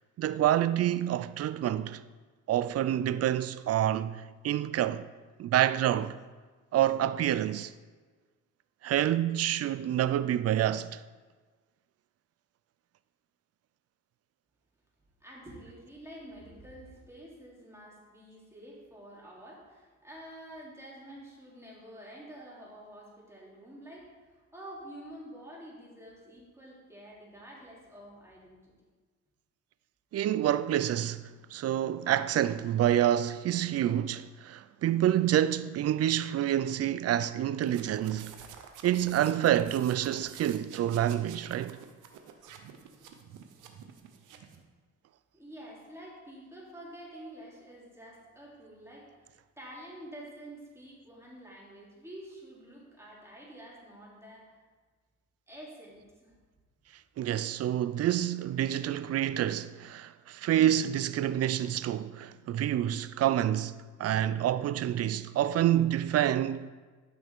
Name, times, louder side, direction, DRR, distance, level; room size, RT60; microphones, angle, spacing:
voice 1, 0.2-2.0 2.5-5.1 5.4-6.2 6.7-7.7 8.8-11.0 30.1-31.2 31.5-38.3 38.8-41.8 57.2-66.7, right 11 dB, 55° right, 0.5 m, -28 dB
voice 2, 15.2-28.7 45.3-54.6 55.5-56.3 57.5-57.6, right 1 dB, 10° right, 3.1 m, -48 dB
sound 1, 37.6-44.6, right 7 dB, 85° right, 1.0 m, -50 dB
12.0 x 6.0 x 3.7 m
cardioid pair, 90°, 30 cm